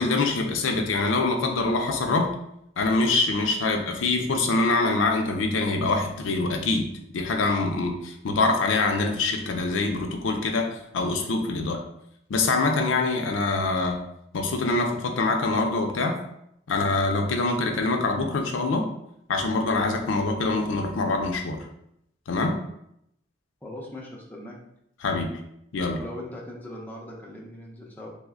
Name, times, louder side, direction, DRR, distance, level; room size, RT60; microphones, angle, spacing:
voice 1, 0.0-2.3 2.8-6.9 7.1-11.8 12.3-14.0 14.3-16.2 16.7-18.9 19.3-21.7 22.3-22.6 25.0-25.4 25.7-26.0, left 3 dB, 85° left, 3 dB, 0.5 m, -24 dB
voice 2, 23.6-24.6 25.9-28.1, left 1 dB, 10° left, -3 dB, 0.6 m, -40 dB
3.2 x 2.1 x 3.5 m, 0.76 s
head